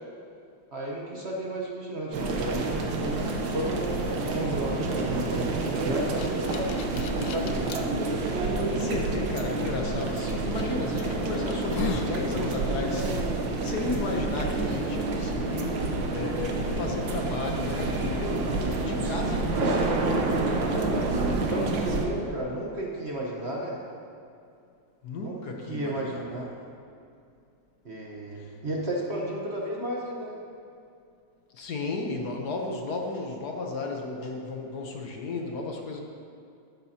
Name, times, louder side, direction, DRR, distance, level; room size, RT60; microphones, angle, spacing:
voice 1, 0.7-6.7 7.2-7.9 21.2-23.8 25.2-26.5 27.8-30.4, right 1 dB, 40° right, -2 dB, 1.2 m, -33 dB
sound 1, 2.1-22.0, right 2 dB, 90° right, 1.7 m, -28 dB
sound 2, 5.8-7.8 8.5-8.6 10.3-10.5 11.0-11.1 11.5-12.2, left 7 dB, 80° left, 1.3 m, -37 dB
voice 2, 8.7-13.1 13.6-20.6 25.0-26.5 28.3-28.5 31.5-36.0, left 3 dB, 60° left, 1 dB, 1.5 m, -34 dB
13.0 x 12.0 x 2.9 m, 2.4 s
omnidirectional pair, 2.0 m